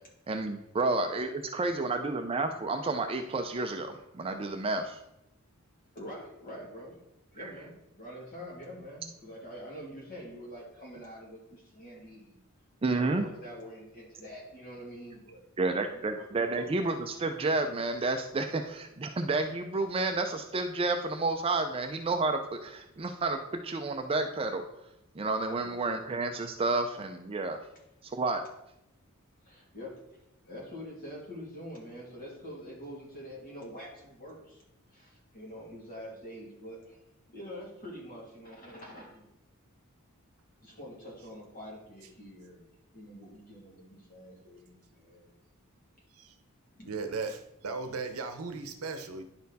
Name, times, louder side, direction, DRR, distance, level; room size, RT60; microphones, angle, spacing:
voice 1, 0.3-5.0 7.4-7.5 12.8-13.3 15.6-24.6 25.2-27.6 28.0-28.4, right 3 dB, 25° right, 5 dB, 0.4 m, -30 dB
voice 2, 5.9-7.0 7.3-12.3 12.8-16.3 16.5-16.9 25.6-25.7 29.4-34.6 34.9-37.0 37.3-39.3 40.6-45.3 46.7-46.9, equal, 40° left, -3 dB, 2.5 m, -46 dB
voice 3, 46.9-49.2, right 4 dB, 80° right, 8 dB, 0.7 m, -37 dB
10.5 x 4.3 x 4.0 m, 0.86 s
head